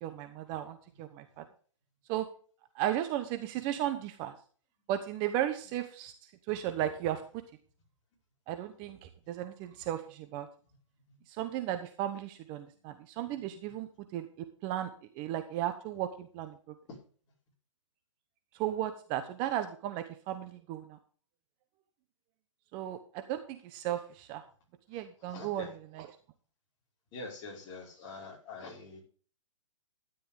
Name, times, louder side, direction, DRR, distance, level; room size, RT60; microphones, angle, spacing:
voice 1, 0.0-1.4 2.1-2.3 2.7-4.3 4.9-6.1 6.5-7.2 8.5-10.5 11.3-14.9 15.1-16.6 18.5-21.0 22.7-24.4 24.9-26.1, right 12 dB, 25° right, 9 dB, 1.0 m, -35 dB
voice 2, 25.2-25.7 27.1-29.0, left 3 dB, 25° left, -1 dB, 5.0 m, -45 dB
13.0 x 10.5 x 3.6 m, 0.43 s
hypercardioid pair, 150°, 17 cm